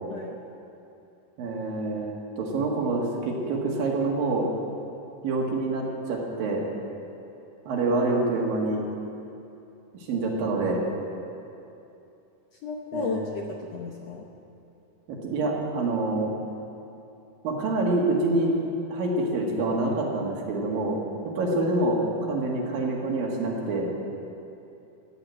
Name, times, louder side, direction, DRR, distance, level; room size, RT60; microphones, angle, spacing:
voice 1, 1.4-4.5 5.2-6.6 7.7-8.8 10.1-10.8 12.9-13.3 15.1-16.3 17.4-18.6 18.9-21.0 21.2-23.9, right 2 dB, 90° right, -2 dB, 3.7 m, -26 dB
voice 2, 12.6-14.3, left 5 dB, 70° left, 0 dB, 1.6 m, -33 dB
15.0 x 8.6 x 8.8 m, 2.8 s
omnidirectional pair, 3.9 m